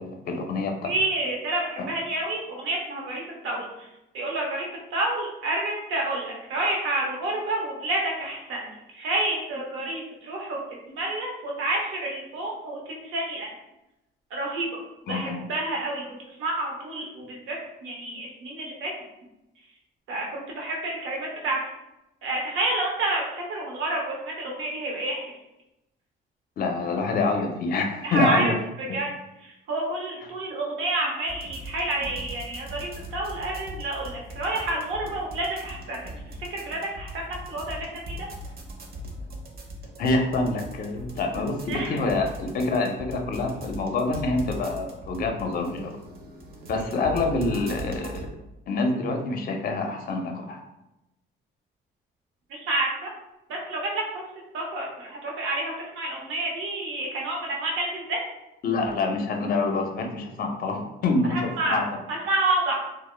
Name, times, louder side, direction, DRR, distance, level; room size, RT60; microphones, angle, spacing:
voice 1, 0.0-0.9 1.8-1.9 15.1-15.4 26.6-28.5 28.9-29.0 40.0-45.9 46.7-48.3 48.7-50.6 58.6-61.9, left 3 dB, 45° left, 3 dB, 0.4 m, -26 dB
voice 2, 0.8-3.9 4.1-10.6 10.9-13.5 14.3-14.8 15.0-18.9 20.1-21.6 22.2-25.4 28.0-28.5 28.8-29.1 29.4-37.9 38.2-38.3 41.7-42.0 52.5-53.1 53.5-54.2 54.5-58.2 61.3-62.7, right 2 dB, 85° right, -1 dB, 0.7 m, -29 dB
sound 1, 31.3-48.3, equal, 50° right, 0.6 m, -40 dB
2.1 x 2.0 x 3.0 m, 0.91 s
cardioid pair, 90°, 20 cm